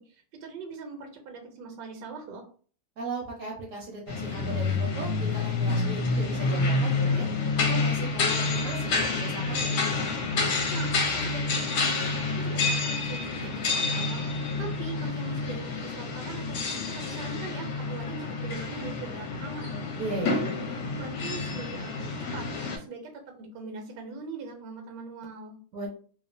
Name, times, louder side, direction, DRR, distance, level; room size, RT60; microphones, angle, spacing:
voice 1, 0.0-2.4 10.7-19.7 20.2-20.5 20.9-25.6, right 4 dB, 90° right, 4 dB, 1.2 m, -41 dB
voice 2, 3.0-7.3 7.5-9.8 20.0-20.4 25.7-25.9, right 3 dB, 65° right, -1 dB, 0.8 m, -37 dB
sound 1, 4.1-22.8, left 3 dB, 70° left, 1.0 m, -28 dB
2.9 x 2.0 x 2.5 m, 0.43 s
omnidirectional pair, 1.8 m